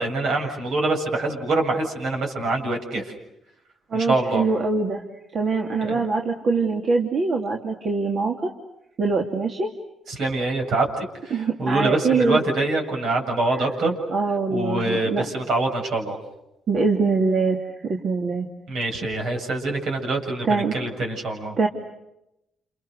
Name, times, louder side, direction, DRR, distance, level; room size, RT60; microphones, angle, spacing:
voice 1, 0.0-3.1 3.9-4.5 5.8-6.0 10.1-14.0 14.5-16.2 18.7-21.6, right 2 dB, 70° right, 2 dB, 7.5 m, -25 dB
voice 2, 3.9-5.0 5.3-8.5 9.0-9.7 11.3-12.4 13.5-13.7 14.1-15.2 16.7-17.6 17.9-18.5 20.4-20.7 21.6-21.7, right 4 dB, 55° right, 2 dB, 3.0 m, -23 dB
30.0 x 29.0 x 6.6 m, 0.87 s
cardioid pair, 90°, 0 cm